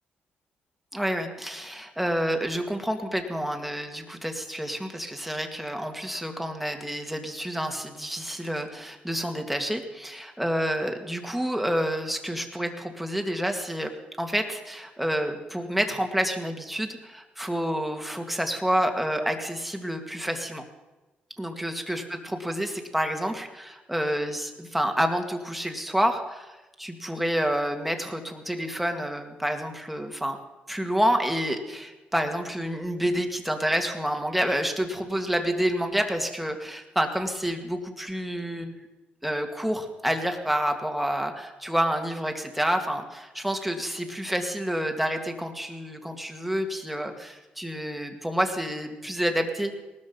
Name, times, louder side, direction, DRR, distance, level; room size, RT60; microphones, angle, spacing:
voice 1, 0.9-13.9 14.2-20.6 21.4-30.4 30.7-38.8 39.2-49.7, equal, 5° right, 4 dB, 2.2 m, -28 dB
19.0 x 13.0 x 5.6 m, 1.1 s
cardioid pair, 100°, 4 cm